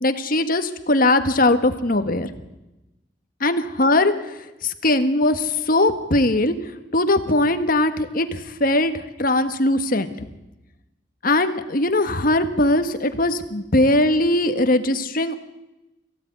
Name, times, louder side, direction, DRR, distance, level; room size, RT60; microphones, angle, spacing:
voice 1, 0.0-2.3 3.4-6.5 6.9-10.1 11.2-15.3, left 1 dB, 50° left, 9 dB, 1.6 m, -20 dB
22.0 x 16.0 x 9.6 m, 1.0 s
head